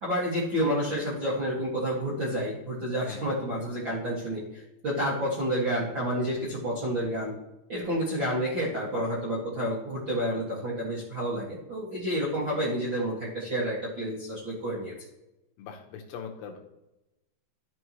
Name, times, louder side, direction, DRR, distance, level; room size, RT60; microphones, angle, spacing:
voice 1, 0.0-7.3 7.7-14.9, equal, 50° right, -8 dB, 1.4 m, -29 dB
voice 2, 15.6-16.6, left 6 dB, 75° left, 3 dB, 2.8 m, -41 dB
13.0 x 5.5 x 3.1 m, 0.95 s
omnidirectional pair, 5.1 m